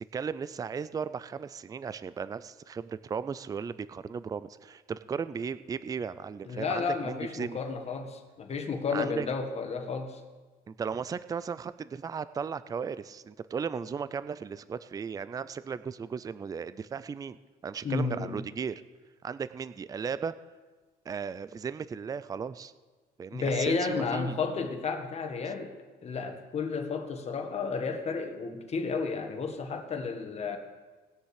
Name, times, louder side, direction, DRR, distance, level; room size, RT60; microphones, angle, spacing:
voice 1, 0.1-7.6 8.9-9.3 10.7-18.7 19.2-20.3 21.1-22.7 23.2-24.4, right 6 dB, 20° right, 15 dB, 0.4 m, -36 dB
voice 2, 6.4-10.2 17.8-18.5 23.3-25.7 26.0-30.6, left 4 dB, 40° left, 5 dB, 1.7 m, -32 dB
19.0 x 6.7 x 4.9 m, 1.3 s
cardioid pair, 110°, 17 cm